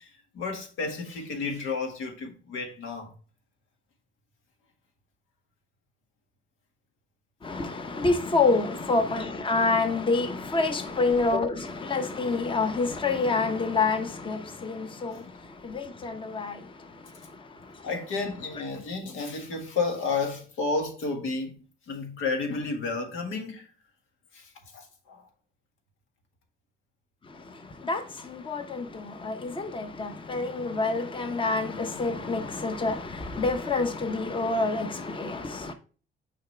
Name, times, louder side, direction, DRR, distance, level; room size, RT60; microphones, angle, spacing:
voice 1, 0.0-3.1 15.0-15.3 17.8-23.7 24.3-25.3, left 4 dB, 85° left, 1.8 m, -32 dB
voice 2, 7.4-17.9 27.2-35.7, left 3 dB, 25° left, 0.9 m, -28 dB
6.6 x 5.0 x 3.3 m
cardioid pair, 90°, 20 cm